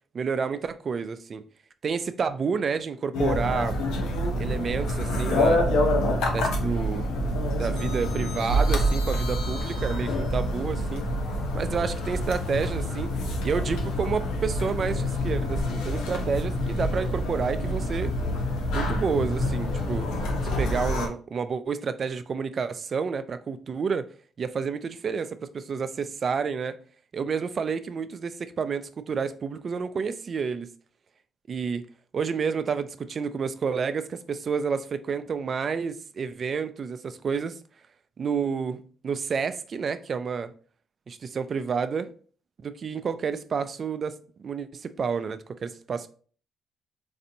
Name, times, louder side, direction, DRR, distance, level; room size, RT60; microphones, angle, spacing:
voice 1, 0.1-1.4 1.8-3.8 4.4-5.6 6.3-7.1 7.6-11.1 11.5-13.1 13.4-18.1 18.7-20.1 20.4-24.1 24.4-26.8 27.1-30.7 31.5-31.8 32.1-37.6 38.2-40.5 41.1-42.1 42.6-46.1, right 5 dB, 45° right, 0.3 m, -30 dB
sound 1, 3.1-21.1, left 1 dB, 90° left, 0.7 m, -27 dB
4.0 x 2.6 x 2.7 m
cardioid pair, 90°, 0 cm